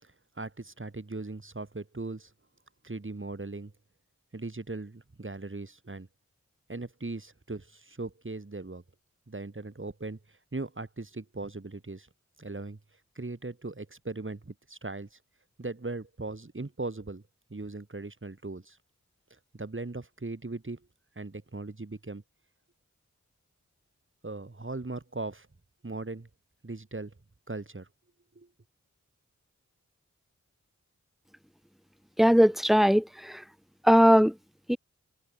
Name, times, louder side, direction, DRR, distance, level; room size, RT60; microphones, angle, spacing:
voice 1, 0.0-2.3 2.8-3.7 4.3-6.1 6.7-8.8 9.3-12.1 12.4-12.8 13.2-15.2 15.6-17.2 17.5-18.8 19.3-20.8 21.2-22.2 24.2-25.5 25.8-26.3 26.6-27.1 27.5-27.9 28.4-28.5, right 2 dB, 40° right, 7.1 m, -39 dB
voice 2, 32.2-33.4 33.8-34.3 34.7-34.8, equal, ahead, 1.2 m, -20 dB
cardioid pair, 45°, 30 cm